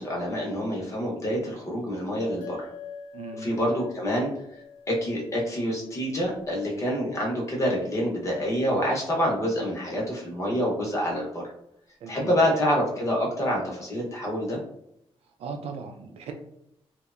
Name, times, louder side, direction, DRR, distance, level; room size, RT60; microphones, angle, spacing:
voice 1, 0.0-2.6 3.3-4.3 4.9-11.4 12.1-14.6, equal, 30° left, -2 dB, 0.7 m, -27 dB
sound 1, 2.4-7.1, left 6 dB, 55° left, 0.9 m, -45 dB
voice 2, 3.1-3.5 12.0-12.3 15.4-16.3, right 5 dB, 80° right, 5 dB, 0.4 m, -37 dB
2.8 x 2.1 x 2.4 m, 0.76 s
wide cardioid pair, 155°, 10 cm